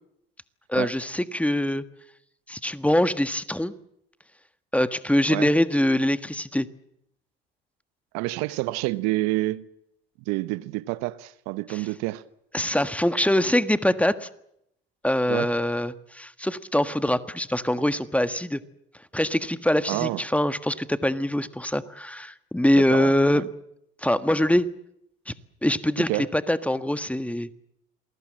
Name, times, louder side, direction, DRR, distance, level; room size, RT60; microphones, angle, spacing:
voice 1, 0.7-1.8 2.5-3.7 4.7-6.7 11.7-11.8 12.5-14.3 15.0-18.6 19.1-23.5 24.0-24.7 25.3-25.4 25.6-27.5, left 1 dB, 5° left, 1.5 m, -23 dB
voice 2, 8.1-9.7 10.3-12.2 15.3-15.5 19.9-20.2 22.7-23.4 26.1-26.3, right 19 dB, 65° right, 1.1 m, -28 dB
27.5 x 20.5 x 7.7 m
hypercardioid pair, 70°, 29 cm